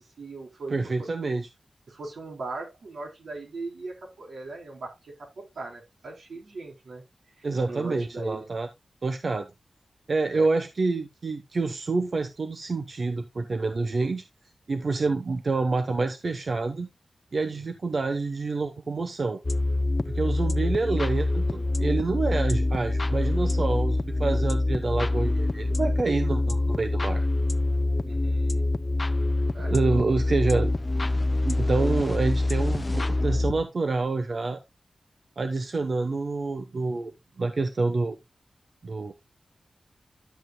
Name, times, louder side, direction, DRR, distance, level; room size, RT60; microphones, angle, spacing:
voice 1, 0.2-1.3 1.9-7.0 7.4-8.5 10.3-10.5 17.5-17.6 28.0-28.7 29.3-29.8, right 3 dB, 85° right, 3.7 m, -39 dB
voice 2, 0.7-1.5 7.4-8.7 9.0-9.5 10.1-14.2 14.7-16.9 17.3-19.4 20.1-27.2 29.6-30.7 31.4-34.6 35.4-38.2 38.8-39.1, right 3 dB, 50° right, 0.9 m, -27 dB
sound 1, 19.4-33.6, left 2 dB, 30° left, 0.4 m, -25 dB
11.5 x 7.9 x 2.2 m
wide cardioid pair, 130°, 0 cm